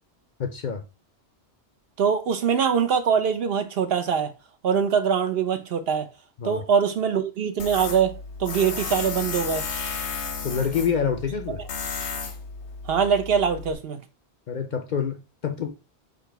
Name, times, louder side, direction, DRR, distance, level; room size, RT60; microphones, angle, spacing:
voice 1, 0.4-0.8 6.4-6.6 10.4-11.6 14.5-15.7, left 7 dB, 55° left, 0.6 m, -27 dB
voice 2, 2.0-4.3 4.6-6.1 6.4-9.6 11.5-11.6 12.9-14.0, right 7 dB, 65° right, 0.9 m, -23 dB
Tools, 7.6-13.7, left 5 dB, 85° left, 1.2 m, -33 dB
3.9 x 2.9 x 4.6 m
omnidirectional pair, 1.1 m